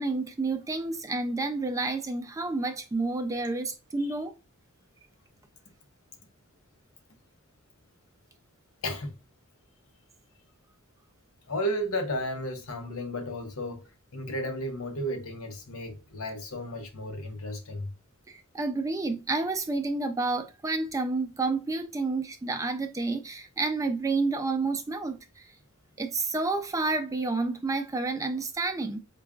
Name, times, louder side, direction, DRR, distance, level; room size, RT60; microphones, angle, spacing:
voice 1, 0.0-4.3 18.3-25.5 26.0-29.0, right 3 dB, 15° right, 0.4 m, -30 dB
voice 2, 8.8-9.1 11.5-13.9 14.1-17.9, equal, 70° left, 0.8 m, -33 dB
5.0 x 2.3 x 2.3 m
head